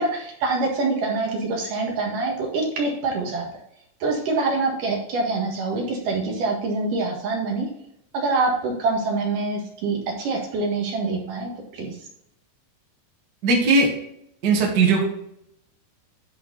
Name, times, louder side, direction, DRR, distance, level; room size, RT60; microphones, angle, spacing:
voice 1, 0.0-3.5 4.0-7.7 8.1-12.0, right 3 dB, 60° right, 0 dB, 2.7 m, -25 dB
voice 2, 13.4-13.9 14.4-15.0, right 3 dB, 75° right, -1 dB, 0.9 m, -18 dB
11.0 x 4.6 x 4.0 m, 0.74 s
omnidirectional pair, 5.3 m